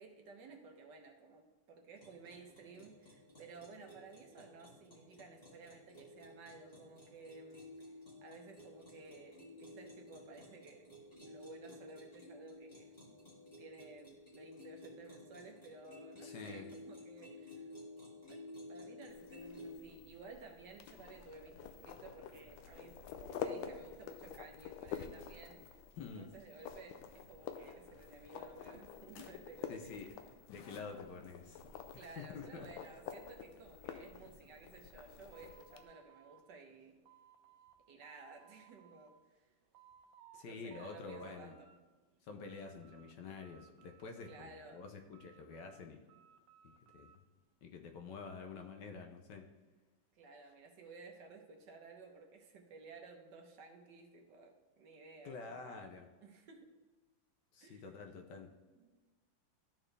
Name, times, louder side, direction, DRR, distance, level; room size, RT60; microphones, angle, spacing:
voice 1, 0.0-7.9 8.2-10.9 11.2-12.9 13.6-17.7 18.3-18.4 18.7-25.8 26.2-29.9 31.9-37.0 37.9-39.2 40.5-41.7 44.2-44.9 50.1-55.8 56.2-56.7 57.6-57.9 58.7-59.0, right 4 dB, 65° right, 3 dB, 1.4 m, -55 dB
sound 1, 2.0-19.8, left 1 dB, 20° left, 1.9 m, -54 dB
voice 2, 16.2-16.7 26.0-26.3 29.7-30.1 30.5-31.6 31.9-32.7 40.3-41.5 42.3-46.0 46.6-47.2 47.6-49.4 55.2-56.1 57.5-58.5, left 4 dB, 70° left, 4 dB, 1.3 m, -48 dB
sound 2, 19.1-35.8, left 7 dB, 90° left, 1.4 m, -49 dB
sound 3, 35.3-37.8 38.0-39.1 39.5-40.4 40.7-41.8 42.1-43.1 43.4-44.7 45.1-47.2, right 9 dB, 85° right, 1.5 m, -63 dB
13.0 x 4.4 x 3.3 m, 1.3 s
omnidirectional pair, 2.2 m